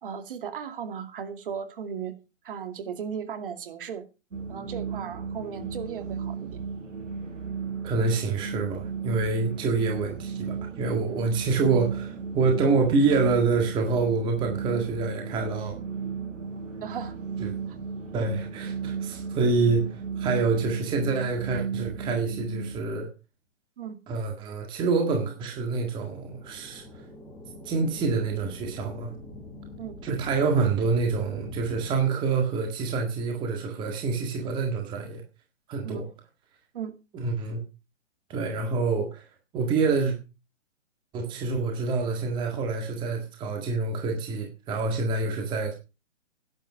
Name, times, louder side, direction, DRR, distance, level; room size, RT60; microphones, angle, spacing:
voice 1, 0.0-2.2 2.4-4.0 4.5-6.5 14.7-14.9 16.8-17.2 23.8-24.0 29.8-30.0 35.8-36.1 36.7-36.9, right 7 dB, 45° right, 8 dB, 2.4 m, -36 dB
sound 1, 4.3-22.8, right 5 dB, 90° right, 6.3 m, -35 dB
voice 2, 7.8-15.8 17.4-17.5 18.1-23.1 24.1-26.8 27.6-29.1 30.0-35.2 35.7-36.0 37.1-37.6 38.3-39.3 39.5-40.1 41.1-45.7, right 4 dB, 10° right, 3 dB, 1.7 m, -26 dB
sound 2, 25.1-31.9, left 1 dB, 5° left, 1.8 m, -45 dB
11.0 x 8.3 x 6.0 m, 0.30 s
hypercardioid pair, 160°, 38 cm